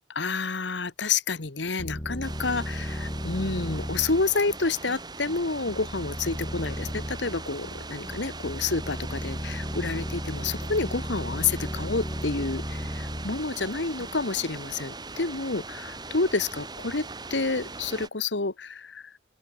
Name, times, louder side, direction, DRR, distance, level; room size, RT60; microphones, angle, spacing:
voice 1, 0.1-19.0, left 4 dB, 80° left, 1.6 m, -29 dB
sound 1, 1.8-14.3, equal, 20° left, 1.7 m, -35 dB
sound 2, 2.2-18.1, right 3 dB, 20° right, 3.3 m, -41 dB
open air
head